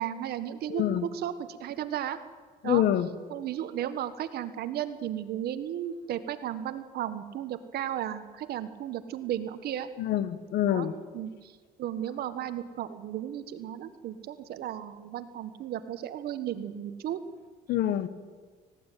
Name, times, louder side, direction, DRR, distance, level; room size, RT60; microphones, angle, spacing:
voice 1, 0.0-2.2 2.6-2.8 3.3-9.9 10.7-10.9 11.1-11.5 11.8-17.2, right 11 dB, 70° right, 11 dB, 1.5 m, -34 dB
voice 2, 0.7-1.0 2.6-3.1 10.0-10.9 17.7-18.1, left 11 dB, 70° left, 14 dB, 1.4 m, -26 dB
18.0 x 17.0 x 9.3 m, 1.5 s
cardioid pair, 110°, 17 cm